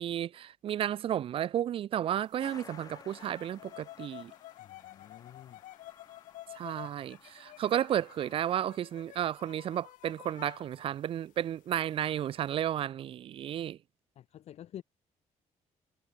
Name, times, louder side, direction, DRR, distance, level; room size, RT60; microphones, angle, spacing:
voice 1, 0.0-4.3 6.6-13.8, right 10 dB, 45° right, 0.5 m, -33 dB
sound 1, 2.4-11.7 12.1-12.5, left 15 dB, 80° left, 1.4 m, -51 dB
Truck, 2.4-8.6, left 6 dB, 30° left, 2.9 m, -56 dB
voice 2, 4.6-5.6 14.1-14.8, left 11 dB, 55° left, 3.3 m, -49 dB
cardioid pair, 175°, 13 cm